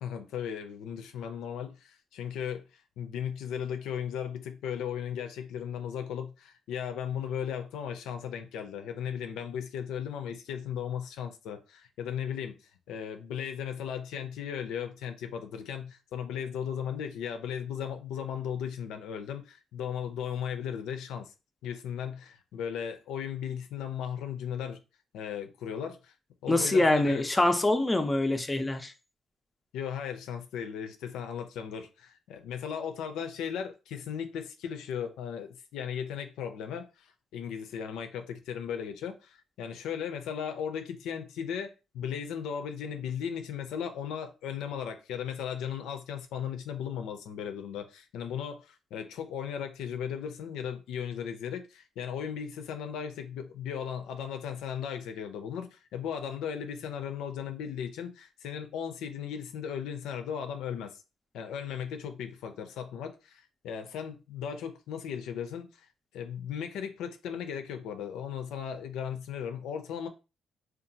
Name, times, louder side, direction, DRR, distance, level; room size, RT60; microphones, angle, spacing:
voice 1, 0.0-2.6 3.0-12.6 12.9-21.3 21.6-24.8 25.1-26.1 26.4-27.2 29.7-61.0 61.3-65.9 66.1-70.1, left 8 dB, 85° left, 0.4 m, -36 dB
voice 2, 26.5-28.9, left 2 dB, 15° left, 0.4 m, -25 dB
2.7 x 2.3 x 2.6 m
cardioid pair, 90°, 0 cm